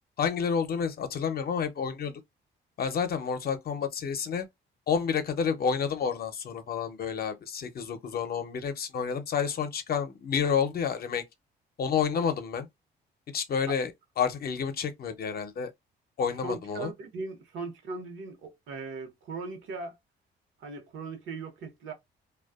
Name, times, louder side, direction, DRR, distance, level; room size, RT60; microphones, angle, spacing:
voice 1, 0.2-2.2 2.8-4.5 4.9-11.2 11.8-12.7 13.3-13.9 14.2-15.7 16.2-16.9, left 6 dB, 50° left, 0.6 m, -29 dB
voice 2, 16.4-19.9 20.6-21.9, right 3 dB, 80° right, 0.9 m, -38 dB
2.5 x 2.2 x 2.3 m
cardioid pair, 90°, 20 cm